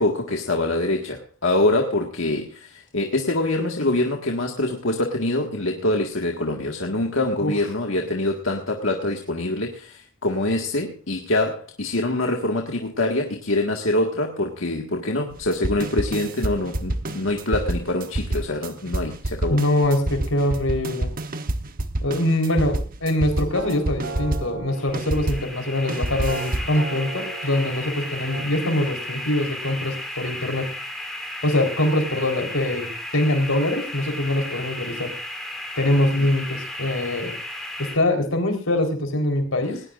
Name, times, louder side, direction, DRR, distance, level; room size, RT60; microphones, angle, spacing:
voice 1, 0.0-19.6, left 2 dB, 70° left, 1 dB, 1.8 m, -24 dB
sound 1, 15.3-25.5 25.9-26.8, right 1 dB, 45° right, 1.1 m, -28 dB
voice 2, 19.5-21.1 22.0-30.7 31.4-35.1 35.8-37.3 37.8-39.8, left 1 dB, 90° left, 5 dB, 4.1 m, -23 dB
sound 2, 23.1-28.5, right 3 dB, 85° right, 2.9 m, -37 dB
sound 3, 24.7-38.0, left 1 dB, ahead, 3.3 m, -34 dB
19.0 x 19.0 x 2.5 m, 0.38 s
head